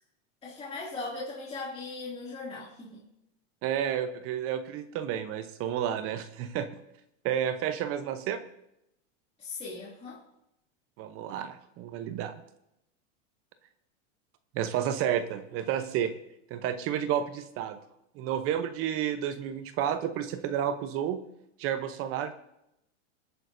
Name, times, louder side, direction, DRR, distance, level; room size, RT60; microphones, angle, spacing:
voice 1, 0.4-3.0 9.4-10.2, left 3 dB, 15° left, -6 dB, 2.6 m, -39 dB
voice 2, 3.6-6.7 7.2-8.4 11.0-12.3 14.5-16.1 16.5-17.8 18.2-21.2 21.6-22.3, right 9 dB, 35° right, 10 dB, 0.8 m, -31 dB
26.0 x 9.1 x 2.7 m, 0.83 s
supercardioid pair, 140°, 39 cm